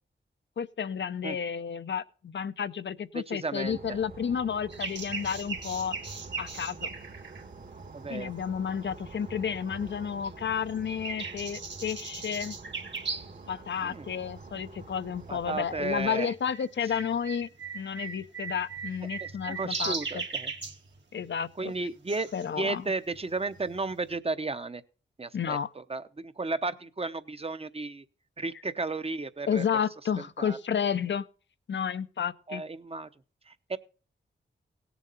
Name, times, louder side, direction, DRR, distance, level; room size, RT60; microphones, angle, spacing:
voice 1, 0.6-6.0 6.4-6.9 8.1-12.6 13.5-17.5 17.7-20.2 21.1-21.5 22.3-22.8 25.3-25.7 29.5-31.3 31.7-32.6, left 7 dB, 70° left, 13 dB, 0.8 m, -31 dB
voice 2, 3.1-4.0 7.9-8.3 13.8-14.1 15.3-16.3 19.2-20.5 21.6-22.3 22.5-24.8 25.2-28.0 28.4-29.7 30.4-30.6 32.5-33.1 33.5-33.8, right 3 dB, 30° right, 12 dB, 0.9 m, -34 dB
sound 1, 3.6-16.1, right 3 dB, 50° right, 1.8 m, -47 dB
sound 2, 4.7-8.7 9.2-10.0 10.2-13.4 13.7-13.8 14.5-14.9 15.2-24.2, right 4 dB, 65° right, 2.3 m, -39 dB
17.0 x 7.2 x 4.1 m, 0.39 s
cardioid pair, 55°, 20 cm